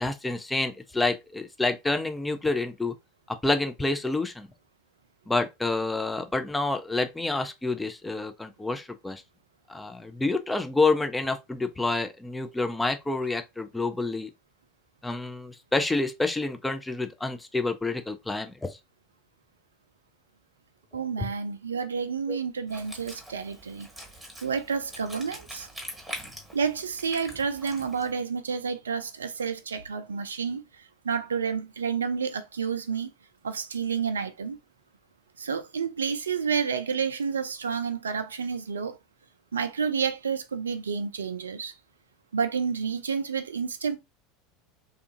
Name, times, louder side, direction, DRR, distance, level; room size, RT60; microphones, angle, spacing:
voice 1, 0.0-2.9 3.3-4.5 5.3-9.2 9.7-14.3 15.0-18.8 21.2-21.3 22.3-22.4, left 3 dB, 10° left, 0.4 m, -28 dB
voice 2, 20.9-23.9 24.4-25.7 26.5-33.1 33.4-34.6 35.4-39.0 39.5-41.7 42.3-44.0, right 6 dB, 85° right, 0.3 m, -30 dB
Wind instrument woodwind instrument, 22.7-28.1, right 1 dB, 5° right, 1.3 m, -43 dB
2.6 x 2.4 x 2.5 m
hypercardioid pair, 80°, 0 cm